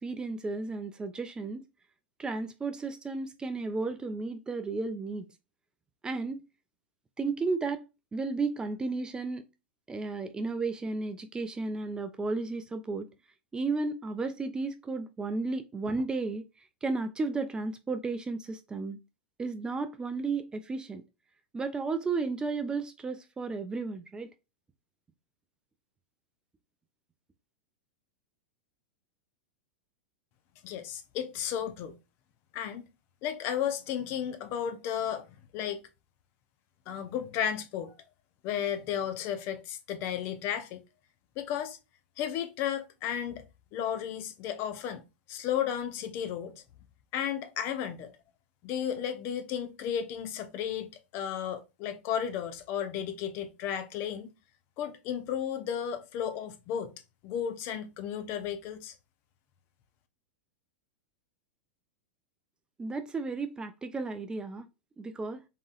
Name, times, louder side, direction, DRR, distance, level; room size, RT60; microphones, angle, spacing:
voice 1, 0.0-1.6 2.2-5.3 6.0-6.4 7.2-7.8 8.1-9.4 9.9-13.1 13.5-16.4 16.8-19.0 19.4-21.0 21.5-24.3 62.8-64.7 65.0-65.4, right 3 dB, 15° right, 0.4 m, -33 dB
voice 2, 30.6-32.0 32.5-32.9 33.2-35.8 36.9-37.9 38.4-40.8 41.4-41.8 42.2-43.4 43.7-46.6 47.1-48.1 48.6-54.3 54.8-56.9 57.2-58.9, left 9 dB, 40° left, 0.7 m, -34 dB
3.8 x 3.7 x 2.4 m
figure-of-eight pair, 95°, 6 cm